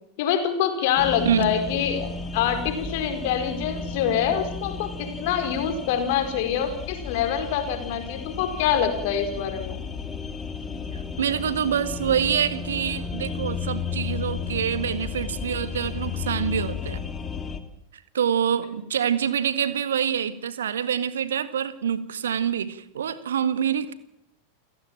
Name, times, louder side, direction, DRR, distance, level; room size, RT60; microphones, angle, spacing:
voice 1, 0.2-9.8, left 8 dB, 50° left, 7 dB, 4.6 m, -25 dB
sound 1, 1.0-17.6, left 5 dB, 20° left, 2.5 m, -33 dB
voice 2, 1.2-1.5 10.9-17.0 18.1-23.9, right 8 dB, 65° right, 14 dB, 1.8 m, -26 dB
29.0 x 16.0 x 9.1 m, 0.76 s
figure-of-eight pair, 90°, 0 cm